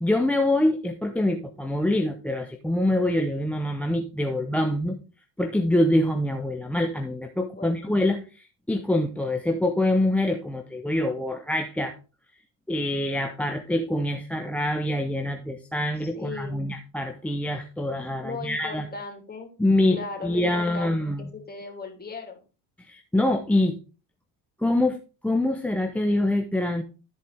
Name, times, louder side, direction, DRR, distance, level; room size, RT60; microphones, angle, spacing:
voice 1, 0.0-5.0 5.4-11.9 12.7-18.9 19.6-20.0 20.2-21.3 22.8-23.8 24.6-25.0 25.2-26.8, left 1 dB, 5° left, 8 dB, 0.6 m, -25 dB
voice 2, 7.6-7.9 16.0-16.7 18.2-19.5 19.9-20.9 21.2-22.4, left 4 dB, 20° left, 2 dB, 3.0 m, -37 dB
13.5 x 4.5 x 3.5 m, 0.33 s
supercardioid pair, 105°, 49 cm